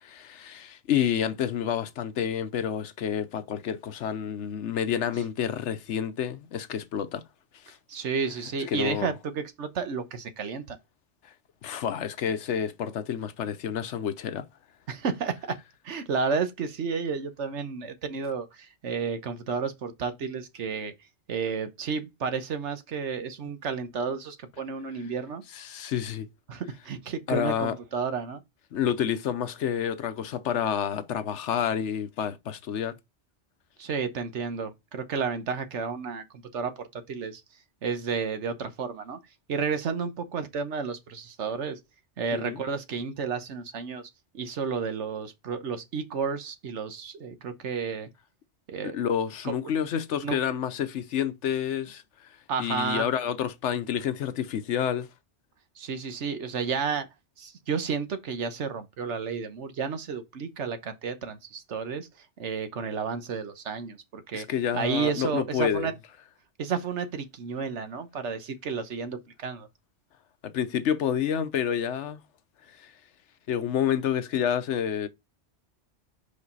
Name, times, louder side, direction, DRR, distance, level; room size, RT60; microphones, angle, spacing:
voice 1, 0.0-7.2 7.6-7.8 8.7-9.1 11.2-11.3 11.6-14.5 25.5-26.3 27.3-27.7 28.7-33.0 42.3-42.6 48.9-55.1 64.3-65.9 70.4-72.2 72.7-72.9 73.5-75.1, left 9 dB, 80° left, 1.1 m, -29 dB
voice 2, 7.9-10.8 14.9-15.6 15.8-20.9 21.3-25.4 26.5-28.4 33.8-37.4 37.8-39.2 39.5-41.8 42.2-48.1 48.7-49.0 49.4-49.7 50.2-50.4 52.5-53.1 55.8-57.1 57.4-62.1 62.4-64.5 64.7-65.9 66.6-69.7, right 5 dB, 80° right, 1.3 m, -31 dB
5.2 x 5.2 x 4.0 m
omnidirectional pair, 1.2 m